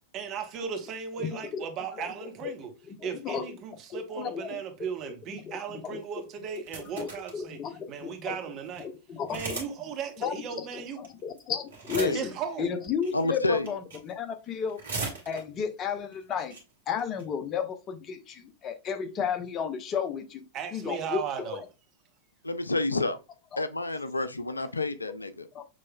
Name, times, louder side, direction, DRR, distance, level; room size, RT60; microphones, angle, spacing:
voice 1, 0.1-2.7 3.0-7.6 7.9-8.9 9.3-11.0 12.1-12.8 20.5-21.6, right 7 dB, 35° right, 0.9 m, -36 dB
voice 2, 1.2-2.5 2.9-3.5 3.9-4.6 5.3-6.2 6.9-8.3 8.8-9.6 10.2-14.8 15.3-16.6 16.9-20.4 20.7-21.2 23.5-23.6 25.5-25.6, left 7 dB, 30° left, 0.6 m, -33 dB
sound 1, 6.4-7.4 8.0-8.1 8.3-8.4 8.7-8.8 9.3-9.7 10.0-10.1 11.0-11.4 11.7-12.4 13.0-13.3 13.7-14.1 14.5-15.6 16.1-16.2 16.4-16.6 17.0-17.2, right 4 dB, 65° right, 1.5 m, -37 dB
voice 3, 13.1-13.7 22.4-23.2 23.6-25.5, left 2 dB, 80° left, 0.3 m, -29 dB
6.2 x 3.1 x 2.2 m
figure-of-eight pair, 90°, 0 cm